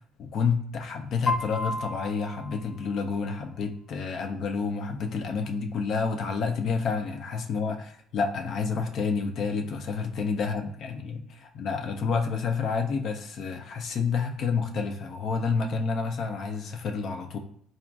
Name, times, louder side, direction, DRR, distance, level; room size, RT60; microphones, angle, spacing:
voice 1, 0.2-17.4, left 5 dB, 60° left, 5 dB, 0.4 m, -29 dB
Piano, 1.3-3.3, left 2 dB, 30° left, 0.8 m, -33 dB
3.8 x 2.3 x 2.3 m, 0.63 s
supercardioid pair, 70°, 0 cm